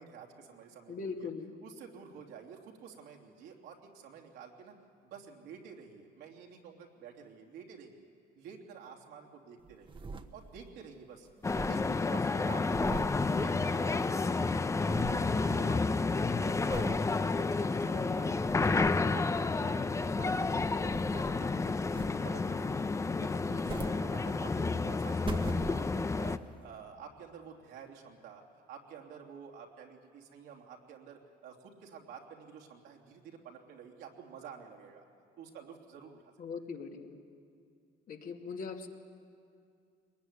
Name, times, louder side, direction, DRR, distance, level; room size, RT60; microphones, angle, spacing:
voice 1, 0.0-1.3 1.6-4.7 5.0-8.1 8.4-10.0 10.3-11.3 11.6-16.0 16.4-18.5 18.7-22.0 22.2-22.9 23.1-28.4 28.7-35.0 35.4-36.3, right 7 dB, 85° right, 0 dB, 3.2 m, -50 dB
voice 2, 0.9-1.5 36.4-37.2 38.1-38.9, left 5 dB, 55° left, 3 dB, 2.3 m, -40 dB
sound 1, 9.6-10.8 11.0-11.1 11.3-14.1 14.3-15.4 15.8-16.1 16.7-17.1 17.6-17.7 18.2-19.1 20.1-21.5 21.9-22.5 23.3-24.6 25.0-26.2 26.8-26.9, right 4 dB, 30° right, 1.3 m, -44 dB
sound 2, 11.4-26.4, left 3 dB, 15° left, 0.6 m, -30 dB
22.5 x 20.0 x 9.6 m, 2.4 s
cardioid pair, 110°, 17 cm